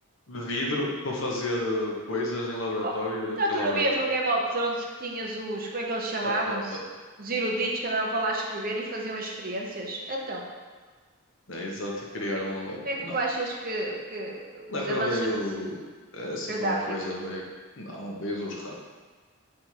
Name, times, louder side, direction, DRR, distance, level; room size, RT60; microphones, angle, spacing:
voice 1, 0.3-3.8 6.2-6.8 11.5-13.1 14.7-15.8 16.1-17.4 17.8-18.7, left 1 dB, 65° left, -2 dB, 1.1 m, -31 dB
voice 2, 3.4-6.8 7.2-10.4 12.8-15.4 16.5-17.1, right 2 dB, 45° right, -1 dB, 0.8 m, -29 dB
6.5 x 3.5 x 4.6 m, 1.4 s
head